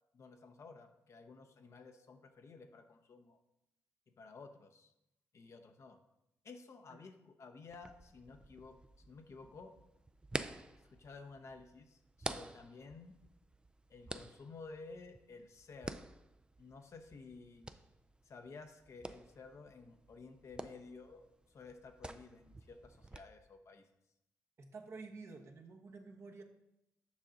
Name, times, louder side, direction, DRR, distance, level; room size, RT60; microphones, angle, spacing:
voice 1, 0.1-3.4 4.2-4.9 5.3-6.0 6.4-8.8 9.1-9.7 10.9-13.1 13.9-16.1 16.6-17.7 18.2-21.2 21.5-23.8, left 4 dB, 55° left, 6 dB, 0.8 m, -53 dB
sound 1, 7.7-23.2, right 2 dB, 15° right, 0.4 m, -49 dB
voice 2, 24.6-26.4, right 4 dB, 50° right, 3 dB, 1.0 m, -50 dB
7.2 x 5.2 x 3.8 m, 0.85 s
supercardioid pair, 60°, 6 cm